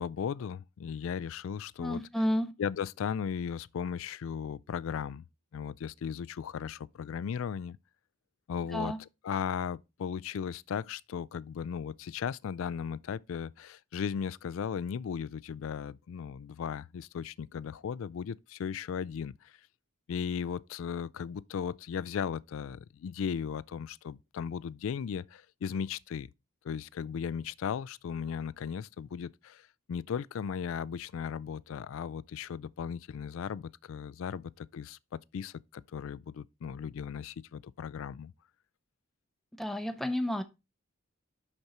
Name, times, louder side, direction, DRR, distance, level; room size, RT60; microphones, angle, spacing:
voice 1, 0.0-2.0 2.6-5.3 5.5-7.8 8.5-8.9 9.2-19.5 20.1-26.3 26.6-38.3, left 7 dB, 75° left, 0.3 m, -36 dB
voice 2, 1.8-2.5 8.6-9.0 39.6-40.4, equal, ahead, 0.5 m, -31 dB
6.5 x 6.0 x 4.2 m
head